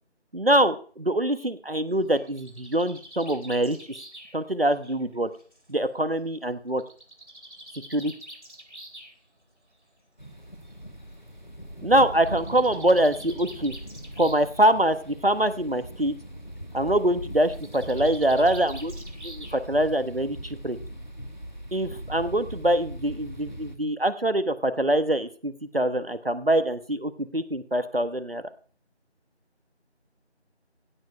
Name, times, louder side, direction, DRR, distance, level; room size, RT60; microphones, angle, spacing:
voice 1, 0.3-3.8 4.3-5.3 5.7-6.8 7.9-8.1 11.8-13.7 14.2-16.1 16.7-18.9 19.2-20.8 21.7-28.4, right 1 dB, 55° right, 12 dB, 1.2 m, -24 dB
Bird, 1.9-5.7 6.8-9.1 10.2-10.3 10.7-10.8 11.0-11.1 12.1-14.6 14.9-15.3 17.4-19.8, right 1 dB, 85° right, 4.8 m, -46 dB
sound 1, 10.2-23.8, equal, 40° left, 1.5 m, -40 dB
16.5 x 7.6 x 4.6 m, 0.43 s
figure-of-eight pair, 180°, 34 cm